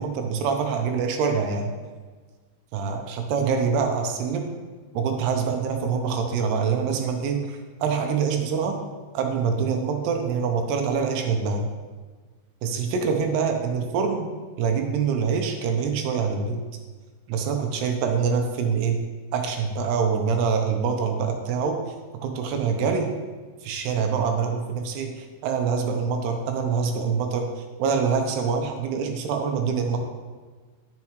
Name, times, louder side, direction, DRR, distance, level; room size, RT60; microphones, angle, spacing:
voice 1, 0.0-1.7 2.7-4.5 4.9-8.8 9.1-11.7 12.6-14.3 14.6-16.6 17.3-19.0 19.3-21.8 22.2-23.1 23.6-27.4 27.8-30.1, right 6 dB, 80° right, 4 dB, 2.8 m, -25 dB
10.5 x 6.9 x 3.1 m, 1.4 s
omnidirectional pair, 4.9 m